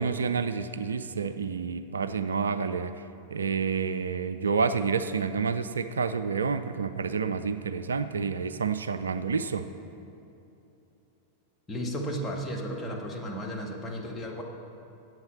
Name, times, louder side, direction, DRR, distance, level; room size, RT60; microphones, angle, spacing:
voice 1, 0.0-3.0 3.3-9.7, right 5 dB, 70° right, 11 dB, 0.4 m, -29 dB
voice 2, 11.7-14.4, equal, 10° left, -2 dB, 1.7 m, -34 dB
8.8 x 7.9 x 7.3 m, 2.9 s
figure-of-eight pair, 90°, 0 cm